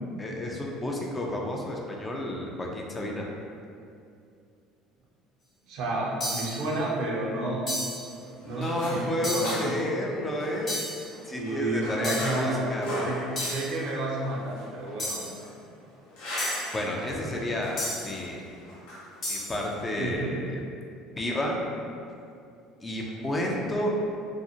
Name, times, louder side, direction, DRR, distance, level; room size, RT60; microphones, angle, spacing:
voice 1, 0.2-3.3 8.4-10.8 11.3-13.1 16.7-18.4 19.3-20.6 21.2-21.6 22.8-23.9, left 1 dB, 20° left, -1 dB, 0.4 m, -31 dB
voice 2, 5.7-7.7 8.4-9.7 11.4-12.6 13.0-15.2 19.9-20.4, right 2 dB, 65° right, -3 dB, 0.5 m, -31 dB
sound 1, 6.2-6.6 7.7-8.1 9.2-9.6 10.7-11.1 12.0-12.4 13.4-13.8 15.0-15.4 16.4-16.8 17.8-18.2 19.2-19.6, left 1 dB, 35° left, 1.0 m, -33 dB
sound 2, 7.9-20.2, equal, 80° left, 0.7 m, -39 dB
2.5 x 2.0 x 2.6 m, 2.5 s
supercardioid pair, 90°, 0 cm